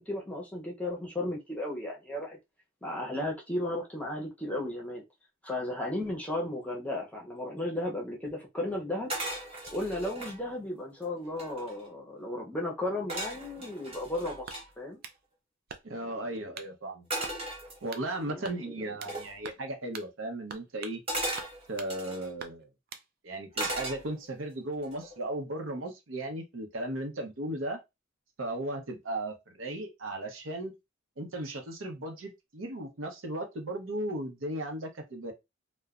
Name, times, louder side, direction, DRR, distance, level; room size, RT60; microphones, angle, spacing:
voice 1, 0.1-2.4 2.8-5.0 5.4-9.1 9.7-15.0 16.0-16.1 18.3-18.9, left 1 dB, 5° left, 0.7 m, -35 dB
sound 1, 9.1-10.4 11.0-11.1 11.3-11.9 13.1-14.7 17.1-18.2 19.1-19.4 21.1-22.3 23.5-24.4 24.8-25.2, right 1 dB, 30° right, 1.0 m, -36 dB
sound 2, 14.5-15.2 15.7-16.1 16.5-16.7 17.2-17.4 17.9-18.1 18.4-19.2 19.4-19.7 19.9-20.1 20.5-21.0 21.4-21.9 22.4-23.1, right 6 dB, 50° right, 0.4 m, -45 dB
voice 2, 15.8-17.1 17.8-21.0 21.7-22.7 23.2-27.8 28.4-30.7 31.2-35.3, right 1 dB, 80° right, 0.8 m, -36 dB
3.0 x 2.1 x 2.4 m
head